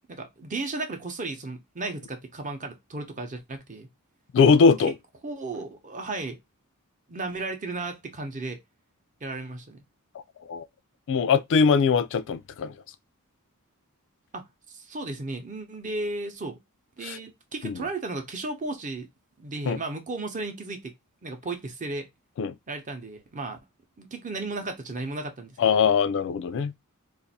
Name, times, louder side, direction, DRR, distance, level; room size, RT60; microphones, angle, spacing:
voice 1, 0.1-3.9 5.2-6.4 7.1-8.6 9.2-9.8 14.3-16.6 17.0-19.1 19.4-20.9 21.2-22.1 22.7-23.6 24.0-25.9, right 2 dB, 35° right, 0.8 m, -34 dB
voice 2, 4.3-4.9 10.5-10.7 11.1-12.7 17.0-17.2 17.6-17.9 19.7-19.8 22.4-22.5 25.6-26.7, left 5 dB, 60° left, 0.3 m, -21 dB
2.6 x 2.5 x 4.0 m
head